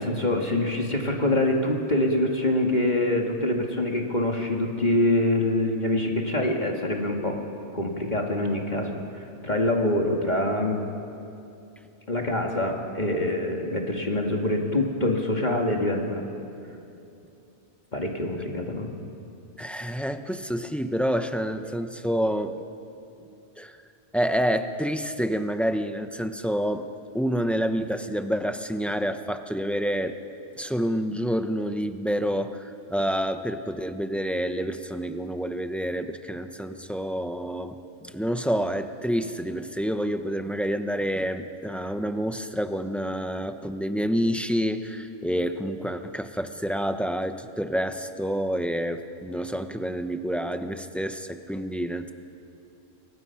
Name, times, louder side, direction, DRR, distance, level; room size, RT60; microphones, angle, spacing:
voice 1, 0.0-7.4 7.7-9.0 9.4-10.8 12.1-16.3 17.9-18.9, left 1 dB, 35° left, 1 dB, 2.1 m, -25 dB
voice 2, 19.6-22.5 23.6-23.8 24.1-26.9 27.1-30.2 30.5-52.1, equal, ahead, 7 dB, 0.8 m, -28 dB
30.0 x 23.5 x 5.8 m, 2.7 s
omnidirectional pair, 1.3 m